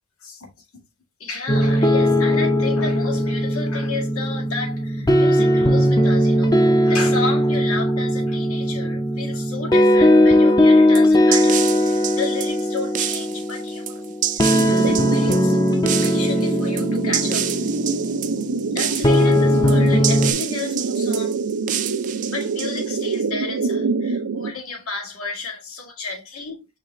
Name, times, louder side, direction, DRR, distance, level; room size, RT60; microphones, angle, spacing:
voice 1, 0.2-0.8 1.2-15.6 16.0-17.5 18.7-21.3 22.3-26.7, left 4 dB, 75° left, 1.8 m, -32 dB
sound 1, 1.5-20.3, equal, 20° left, 0.5 m, -19 dB
sound 2, 11.0-23.2, right 11 dB, 35° right, 0.4 m, -28 dB
sound 3, 14.5-24.5, right 4 dB, 80° right, 0.6 m, -26 dB
5.2 x 3.3 x 3.0 m
head